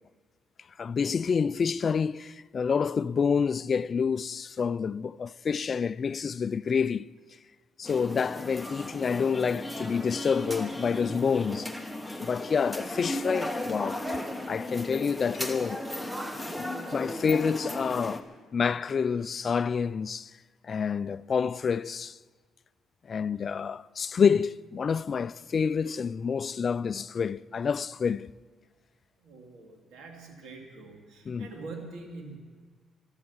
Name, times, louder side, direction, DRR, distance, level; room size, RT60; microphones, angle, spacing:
voice 1, 0.8-7.1 7.8-11.7 12.2-14.0 14.5-15.9 16.6-18.3 18.5-20.3 20.6-22.2 23.1-28.3 31.3-31.5, left 6 dB, 45° left, 0.3 m, -28 dB
sound 1, 7.8-18.2, left 1 dB, ahead, 1.2 m, -36 dB
voice 2, 29.2-32.4, right 3 dB, 85° right, 2.7 m, -44 dB
14.0 x 12.0 x 7.3 m
cardioid pair, 90°, 0 cm